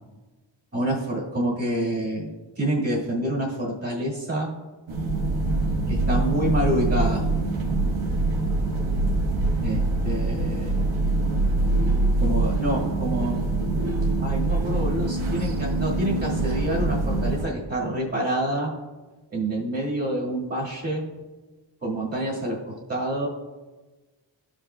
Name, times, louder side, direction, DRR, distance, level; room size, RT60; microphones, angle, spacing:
voice 1, 0.7-2.3 2.6-4.5 5.9-7.2 9.6-9.8 10.0-10.7 12.2-13.4 14.2-18.7 19.3-21.0 21.8-23.3, right 1 dB, 30° right, -4 dB, 1.7 m, -27 dB
sound 1, 4.9-17.5, right 2 dB, 80° right, 1.2 m, -24 dB
13.5 x 5.1 x 2.2 m, 1.2 s
wide cardioid pair, 125°, 46 cm